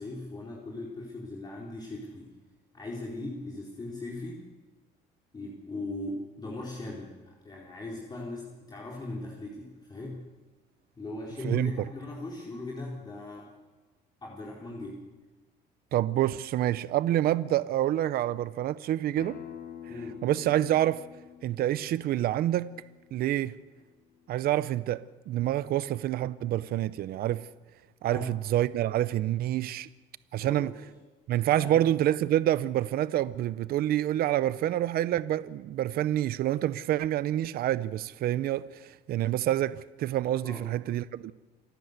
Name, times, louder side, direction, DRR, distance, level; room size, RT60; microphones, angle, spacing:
voice 1, 0.0-2.2 2.7-4.4 5.3-7.2 7.4-10.2 11.0-13.5 14.2-15.0 19.9-20.2 28.1-28.4 30.4-30.7 31.6-31.9 40.4-40.7, left 2 dB, 25° left, 4.2 m, -39 dB
voice 2, 11.4-11.9 15.9-19.4 20.2-21.0 21.4-22.7 23.1-23.6 24.3-27.5 28.0-29.9 30.3-30.7 31.3-41.3, right 13 dB, 65° right, 0.7 m, -27 dB
Acoustic guitar, 19.2-24.4, left 9 dB, 60° left, 2.9 m, -48 dB
28.0 x 12.5 x 8.2 m
cardioid pair, 110°, 17 cm